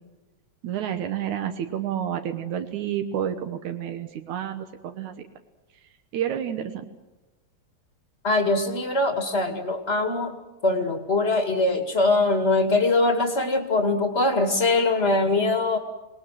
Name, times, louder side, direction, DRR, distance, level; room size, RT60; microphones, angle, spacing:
voice 1, 0.6-5.2 6.1-6.9, right 10 dB, 85° right, 6 dB, 2.7 m, -29 dB
voice 2, 8.2-10.4 10.6-15.8, left 2 dB, 25° left, 5 dB, 2.3 m, -22 dB
27.0 x 20.0 x 7.6 m, 1.1 s
omnidirectional pair, 3.3 m